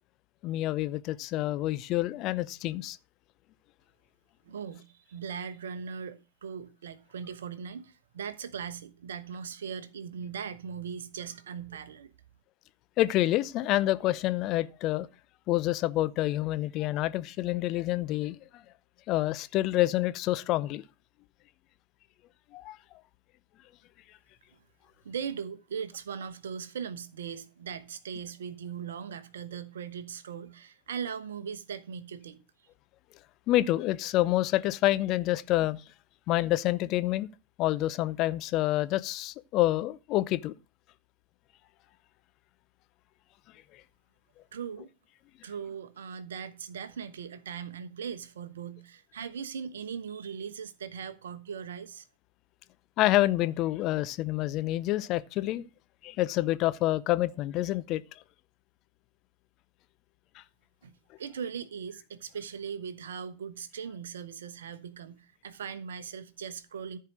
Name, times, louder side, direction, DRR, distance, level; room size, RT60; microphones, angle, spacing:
voice 1, 0.4-3.0 13.0-15.1 15.5-18.4 19.1-20.8 22.5-22.8 33.5-35.8 36.3-37.3 37.6-40.5 53.0-55.6 56.0-58.0, left 16 dB, 40° left, 0.6 m, -27 dB
voice 2, 4.5-12.1 25.0-32.4 44.5-44.9 45.4-52.1 60.8-60.9 61.2-67.0, right 7 dB, 65° right, 1.0 m, -39 dB
14.0 x 4.7 x 6.3 m
figure-of-eight pair, 90°, 0 cm